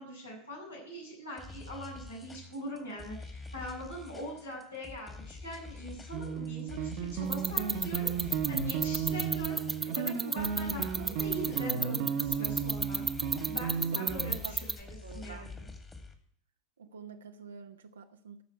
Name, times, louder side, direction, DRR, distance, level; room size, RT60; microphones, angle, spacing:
voice 1, 0.0-9.6 9.8-13.0 13.4-15.7, equal, 80° left, -4 dB, 7.1 m, -42 dB
sound 1, 1.4-16.1, left 3 dB, 20° left, 2.2 m, -47 dB
sound 2, 6.1-14.4, right 7 dB, 50° right, 1.2 m, -34 dB
sound 3, 7.3-14.8, right 3 dB, 15° right, 0.8 m, -29 dB
voice 2, 13.9-15.5 16.8-18.4, right 7 dB, 75° right, 5 dB, 0.9 m, -47 dB
13.5 x 6.4 x 8.6 m, 0.62 s
figure-of-eight pair, 80°, 0 cm